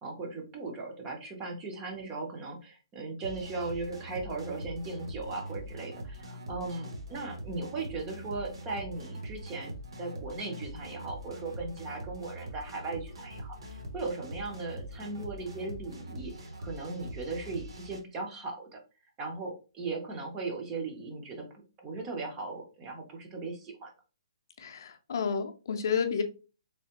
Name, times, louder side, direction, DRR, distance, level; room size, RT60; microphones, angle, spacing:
voice 1, 0.0-18.8 19.2-21.5 21.8-23.9, right 3 dB, 10° right, 2 dB, 0.5 m, -38 dB
sound 1, 3.2-18.0, right 1 dB, 55° right, 0.8 m, -43 dB
voice 2, 24.6-26.2, left 6 dB, 40° left, 6 dB, 0.5 m, -30 dB
3.3 x 3.1 x 2.8 m, 0.34 s
hypercardioid pair, 180°, 3 cm